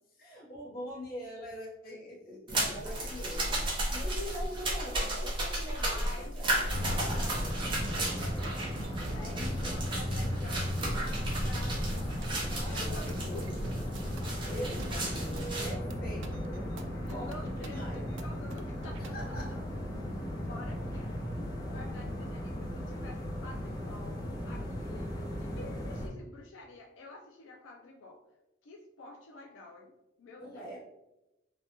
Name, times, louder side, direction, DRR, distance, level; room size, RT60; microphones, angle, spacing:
voice 1, 0.2-6.6 8.9-9.8 12.5-13.5 14.4-15.2 15.6-16.7 17.1-18.1 19.1-19.6 30.4-30.8, equal, 50° left, -2 dB, 0.8 m, -43 dB
sound 1, 2.5-15.7, right 1 dB, 25° right, 0.7 m, -34 dB
voice 2, 5.7-6.4 6.6-8.5 9.1-12.3 12.6-13.8 14.6-15.5 17.1-19.6 20.4-28.2 28.6-30.7, left 2 dB, 85° left, 1 dB, 0.4 m, -49 dB
sound 2, 6.7-26.1, equal, 20° left, 0.5 m, -36 dB
sound 3, 7.8-19.1, right 2 dB, 75° right, 0.3 m, -47 dB
3.2 x 2.1 x 2.8 m, 0.94 s
head